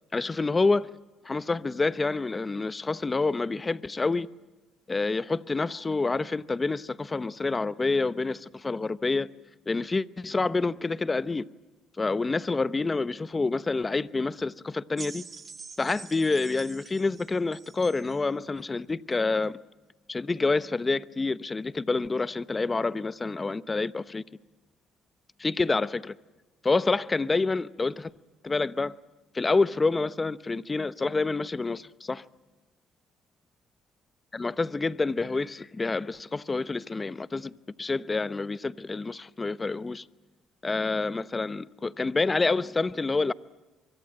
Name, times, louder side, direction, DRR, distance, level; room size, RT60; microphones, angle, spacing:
voice 1, 0.1-0.9 1.2-4.3 4.9-9.3 9.7-11.5 12.0-15.2 15.8-19.6 20.1-24.2 25.4-26.1 26.6-28.1 28.4-28.9 29.3-32.2 34.3-37.5 37.8-40.0 40.6-43.3, left 3 dB, 25° left, 0.9 m, -27 dB
sound 1, 15.0-18.2 19.1-19.2, right 5 dB, 35° right, 2.5 m, -45 dB
24.5 x 23.5 x 8.8 m
cardioid pair, 90°, 0 cm